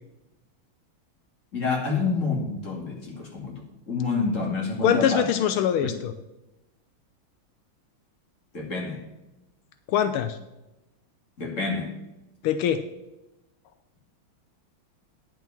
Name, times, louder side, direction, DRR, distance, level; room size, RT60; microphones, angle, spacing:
voice 1, 1.5-5.3 8.5-9.0 11.4-11.9, left 4 dB, 35° left, -1 dB, 2.7 m, -28 dB
voice 2, 4.8-6.1 9.9-10.4 12.4-12.8, left 9 dB, 85° left, 9 dB, 1.6 m, -23 dB
10.5 x 5.9 x 7.1 m, 0.96 s
omnidirectional pair, 2.3 m